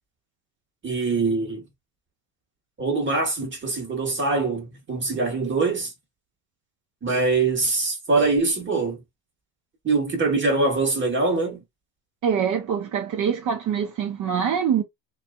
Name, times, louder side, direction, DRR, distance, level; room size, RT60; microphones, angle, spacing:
voice 1, 0.8-1.6 2.8-5.9 7.0-9.0 9.8-11.6, right 3 dB, 30° right, 1.3 m, -23 dB
voice 2, 12.2-14.8, right 7 dB, 50° right, 0.8 m, -24 dB
2.6 x 2.4 x 2.3 m
supercardioid pair, 90°, 40 cm